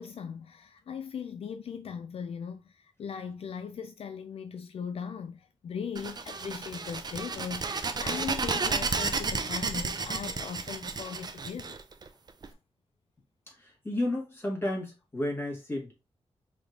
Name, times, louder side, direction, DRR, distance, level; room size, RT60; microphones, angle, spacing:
voice 1, 0.0-11.8, left 6 dB, 70° left, 0.4 m, -39 dB
sound 1, 5.9-12.5, right 4 dB, 40° right, 0.5 m, -32 dB
voice 2, 13.6-15.9, left 1 dB, 20° left, 1.8 m, -32 dB
5.0 x 3.0 x 2.6 m
wide cardioid pair, 120°, 11 cm